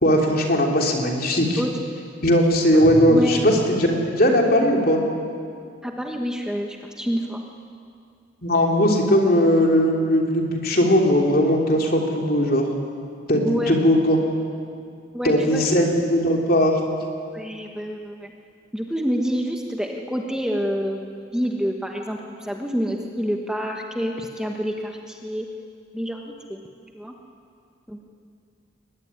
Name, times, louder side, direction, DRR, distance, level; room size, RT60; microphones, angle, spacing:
voice 1, 0.0-1.6 2.2-5.0 8.4-12.7 13.3-14.2 15.2-16.8, equal, 45° left, 1 dB, 3.3 m, -19 dB
sound 1, 2.7-4.2, right 1 dB, 65° right, 3.5 m, -31 dB
voice 2, 5.8-7.4 13.4-13.7 15.1-15.7 17.3-18.3 18.7-25.5 25.9-26.6 26.9-27.1 27.9-28.0, equal, 5° right, 1 dB, 1.3 m, -27 dB
22.0 x 20.5 x 9.8 m, 2.3 s
head